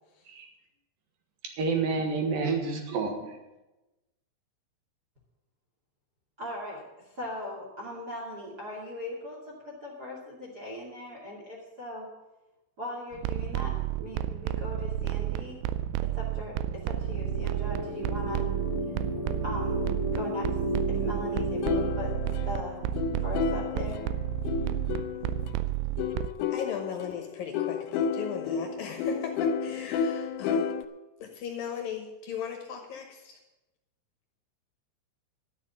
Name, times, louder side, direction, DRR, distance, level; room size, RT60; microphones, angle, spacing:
voice 1, 1.6-3.4, right 4 dB, 60° right, 4 dB, 2.7 m, -29 dB
voice 2, 6.4-6.8 7.1-12.1 12.8-15.6 16.0-18.5 19.4-20.5 20.9-22.1 22.4-22.9 23.2-24.1, left 1 dB, 30° right, -2 dB, 1.9 m, -39 dB
sound 1, 13.1-26.3, right 12 dB, 90° right, 2.4 m, -31 dB
sound 2, 16.6-21.9, equal, 35° left, 0.5 m, -33 dB
sound 3, 21.6-25.5 26.0-30.8, left 6 dB, 85° left, 2.9 m, -31 dB
voice 3, 26.5-30.7 31.2-33.4, left 7 dB, 70° left, 3 dB, 2.3 m, -37 dB
12.5 x 7.4 x 8.5 m, 1.0 s
omnidirectional pair, 5.5 m